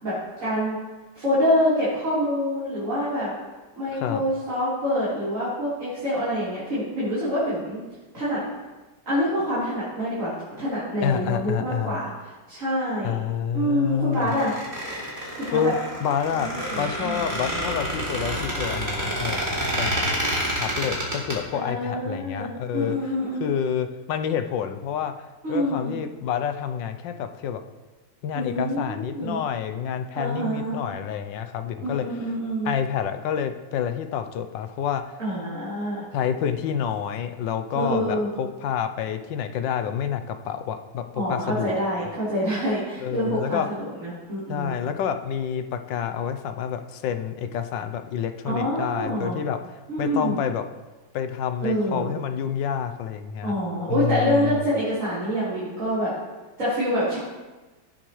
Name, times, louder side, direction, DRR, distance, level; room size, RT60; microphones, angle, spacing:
voice 1, 0.4-0.8 1.1-3.3 3.8-7.8 8.1-8.4 9.1-10.3 10.6-12.1 12.5-13.2 13.5-14.5 15.4-15.7 16.3-17.3 21.5-22.5 22.7-23.6 25.4-25.9 28.3-29.4 30.2-30.8 31.8-32.7 35.2-36.0 37.7-38.4 41.1-44.8 48.4-49.4 49.9-50.4 51.6-52.1 53.4-56.1 56.6-57.2, equal, 40° right, -12 dB, 4.3 m, -26 dB
voice 2, 3.9-4.2 11.0-12.0 13.0-14.3 15.5-20.1 20.5-23.1 23.4-27.6 28.2-32.1 32.6-35.2 36.1-41.7 43.0-43.7 44.5-49.6 50.0-50.6 51.1-53.5 53.9-54.6, left 8 dB, 75° left, 8 dB, 1.4 m, -28 dB
Squeak, 14.1-21.3, right 1 dB, 25° right, 2.8 m, -28 dB
17.0 x 7.9 x 3.2 m, 1.2 s
omnidirectional pair, 2.1 m